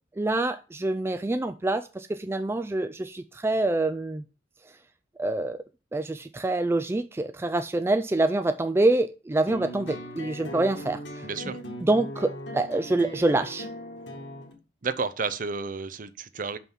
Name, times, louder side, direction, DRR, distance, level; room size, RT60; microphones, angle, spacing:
voice 1, 0.2-4.2 5.2-5.6 5.9-11.0 11.8-13.7, right 2 dB, 15° right, 0.3 m, -26 dB
sound 1, 9.5-14.5, equal, 85° left, 2.0 m, -39 dB
voice 2, 11.2-11.6 14.8-16.6, right 4 dB, 50° right, 0.6 m, -31 dB
6.1 x 5.6 x 5.5 m
head